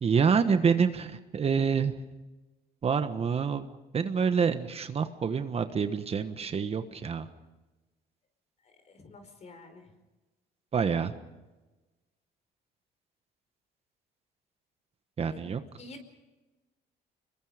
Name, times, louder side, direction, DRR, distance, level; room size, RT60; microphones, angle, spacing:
voice 1, 0.0-2.0 2.8-3.7 3.9-7.3 10.7-11.1 15.2-15.6, right 6 dB, 35° right, 9 dB, 1.3 m, -27 dB
voice 2, 8.6-9.9 15.3-15.4 15.8-16.0, left 2 dB, 40° left, 7 dB, 5.0 m, -49 dB
27.0 x 22.0 x 5.1 m, 1.1 s
cardioid pair, 110°, 17 cm